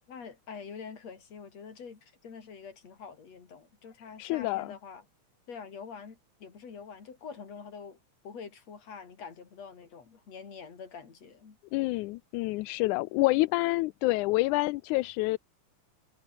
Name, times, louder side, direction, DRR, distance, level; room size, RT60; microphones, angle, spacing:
voice 1, 0.1-5.0 5.5-8.0 8.2-11.6, left 6 dB, 60° left, 4.7 m, -45 dB
voice 2, 4.2-4.7 11.7-15.4, left 21 dB, 90° left, 2.0 m, -27 dB
omnidirectional pair, 3.4 m